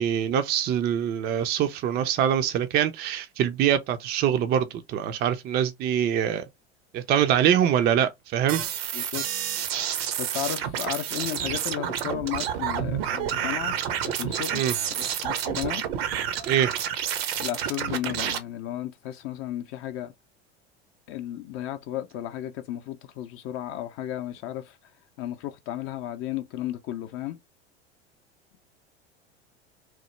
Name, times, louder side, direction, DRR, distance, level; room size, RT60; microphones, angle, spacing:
voice 1, 0.0-6.4 6.9-8.6 14.5-14.7 16.5-16.7, right 9 dB, 30° right, 0.4 m, -24 dB
sound 1, 8.5-18.4, right 9 dB, 65° right, 0.7 m, -29 dB
voice 2, 10.2-13.8 14.0-14.6 15.0-15.9 17.4-20.1 21.1-24.8 25.2-27.4, left 12 dB, 45° left, 0.5 m, -34 dB
3.0 x 2.0 x 3.1 m
hypercardioid pair, 80°, 32 cm